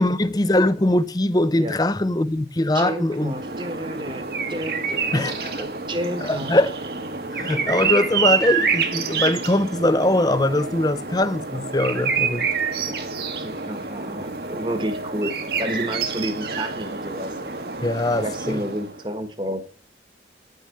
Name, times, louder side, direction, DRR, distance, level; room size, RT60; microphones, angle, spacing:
voice 1, 0.0-3.3 5.1-5.6 6.2-6.7 7.3-12.5 17.8-18.6, left 1 dB, 20° left, 0.6 m, -21 dB
voice 2, 2.7-4.2 4.5-6.5 12.8-13.1 13.4-15.3 15.6-17.3 18.2-19.6, right 1 dB, 25° right, 1.3 m, -30 dB
sound 1, 3.1-19.0, right 5 dB, 60° right, 1.5 m, -27 dB
9.7 x 6.7 x 7.6 m
head